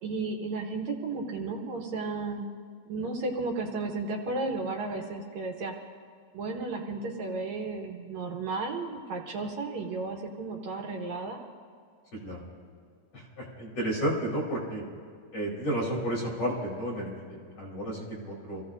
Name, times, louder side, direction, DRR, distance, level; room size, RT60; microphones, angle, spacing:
voice 1, 0.0-2.5 2.9-5.9 6.3-11.4, right 3 dB, 70° right, 2 dB, 2.3 m, -33 dB
voice 2, 13.1-14.8 15.3-18.6, right 1 dB, 50° left, -5 dB, 4.7 m, -32 dB
28.0 x 16.0 x 2.6 m, 2.2 s
omnidirectional pair, 3.6 m